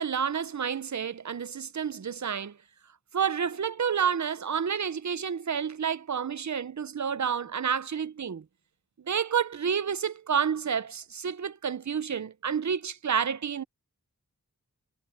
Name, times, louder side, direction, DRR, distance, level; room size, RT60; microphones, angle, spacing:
voice 1, 0.0-2.6 3.1-8.4 9.1-13.6, right 7 dB, 55° right, 0.7 m, -29 dB
wide cardioid pair, 60°, 34 cm